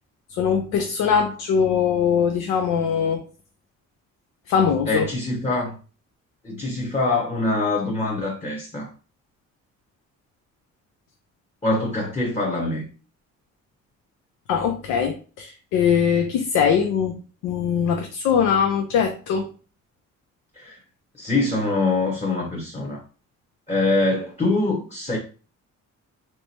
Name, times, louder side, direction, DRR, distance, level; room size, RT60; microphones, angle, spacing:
voice 1, 0.4-3.2 4.5-5.1 14.5-19.5, left 7 dB, 90° left, 0.5 m, -21 dB
voice 2, 4.9-5.7 6.4-8.9 11.6-12.9 20.6-20.8 21.2-23.0 23.7-25.2, left 2 dB, 20° left, 0.9 m, -24 dB
3.3 x 2.9 x 2.8 m
cardioid pair, 90°, 30 cm